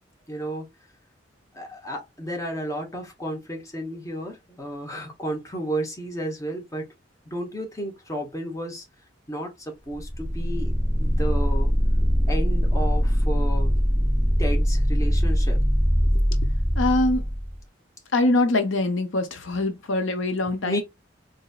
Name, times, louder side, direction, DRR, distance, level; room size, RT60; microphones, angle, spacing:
voice 1, 0.3-0.7 1.5-6.9 7.3-8.9 9.3-11.7 12.3-13.8 14.4-15.6 20.6-20.8, right 1 dB, 15° left, 0.9 m, -32 dB
sound 1, 9.9-17.6, equal, ahead, 0.4 m, -22 dB
voice 2, 16.7-17.3 18.1-20.8, left 2 dB, 80° left, 0.7 m, -23 dB
3.9 x 2.7 x 2.3 m
head